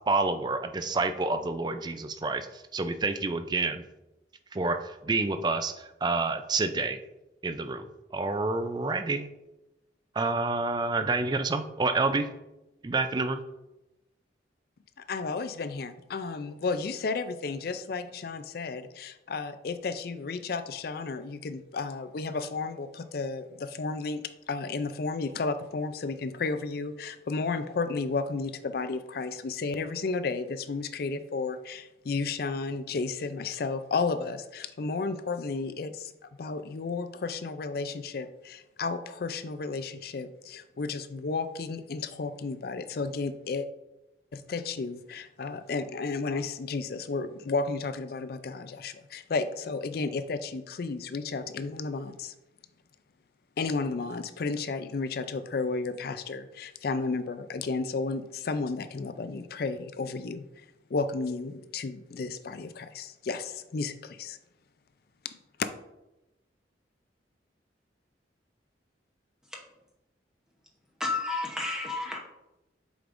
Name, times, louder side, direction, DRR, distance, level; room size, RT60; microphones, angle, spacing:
voice 1, 0.0-3.8 4.5-7.0 7.4-7.9 8.1-9.3 10.2-12.3 12.8-13.4, right 3 dB, 25° right, 0.4 m, -28 dB
voice 2, 15.1-24.2 24.5-36.1 36.4-43.7 44.3-52.3 53.6-60.4 60.9-64.4 65.6-65.7, left 4 dB, 55° left, 0.4 m, -33 dB
voice 3, 71.0-72.2, left 3 dB, 5° right, 0.9 m, -31 dB
7.8 x 5.1 x 2.6 m
head